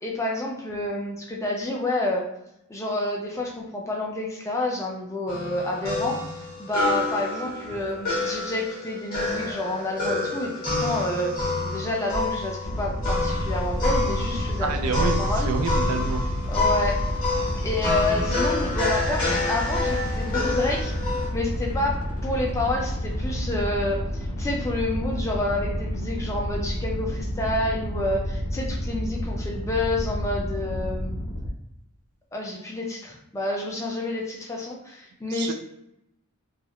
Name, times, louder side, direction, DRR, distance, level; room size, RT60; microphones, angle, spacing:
voice 1, 0.0-2.2 2.7-6.2 6.6-11.3 11.6-15.5 16.5-17.0 17.6-31.1 32.3-35.5, left 2 dB, 15° left, -1 dB, 0.3 m, -29 dB
sound 1, 5.3-21.3, left 2 dB, 40° left, 0.7 m, -28 dB
sound 2, 12.6-31.5, equal, 75° left, 0.5 m, -30 dB
voice 2, 14.6-16.2 35.3-35.5, right 4 dB, 85° right, 5 dB, 0.3 m, -28 dB
2.3 x 2.1 x 2.8 m, 0.82 s
head